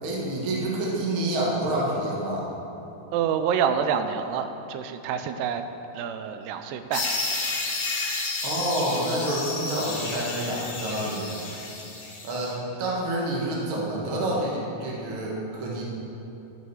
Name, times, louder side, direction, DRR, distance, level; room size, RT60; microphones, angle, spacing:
voice 1, 0.0-2.5 8.4-11.4 12.2-15.8, right 1 dB, 65° right, -4 dB, 1.2 m, -28 dB
voice 2, 3.1-5.6 5.9-7.1, right 7 dB, 85° right, 8 dB, 2.6 m, -27 dB
sound 1, 6.9-12.5, left 3 dB, 55° left, 1.8 m, -31 dB
13.5 x 5.4 x 4.7 m, 2.9 s
omnidirectional pair, 4.8 m